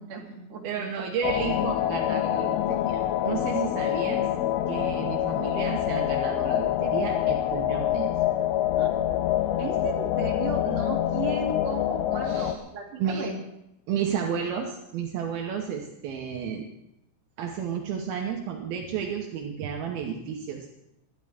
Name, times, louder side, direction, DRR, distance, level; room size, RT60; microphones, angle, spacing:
voice 1, 0.0-1.1 8.8-8.9 9.6-13.4, right 4 dB, 40° right, -2 dB, 2.9 m, -36 dB
voice 2, 0.6-4.3 4.7-8.1 12.2-12.6 13.0-13.3 13.9-16.7 17.4-20.7, right 7 dB, 75° right, 1 dB, 2.2 m, -32 dB
sound 1, 1.2-12.6, left 12 dB, 85° left, 3.1 m, -26 dB
23.5 x 11.5 x 3.5 m, 0.85 s
omnidirectional pair, 5.8 m